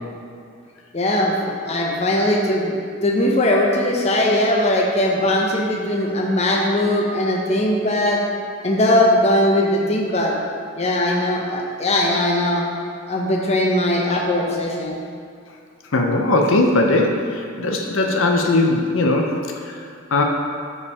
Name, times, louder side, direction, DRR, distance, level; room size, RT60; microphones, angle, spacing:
voice 1, 0.9-8.2 8.6-10.4 10.8-12.7 13.1-15.0, left 1 dB, 35° left, -1 dB, 0.7 m, -20 dB
voice 2, 15.9-19.3 19.6-19.8 20.1-20.2, left 2 dB, 80° left, 2 dB, 0.6 m, -19 dB
5.6 x 5.3 x 4.7 m, 2.3 s
head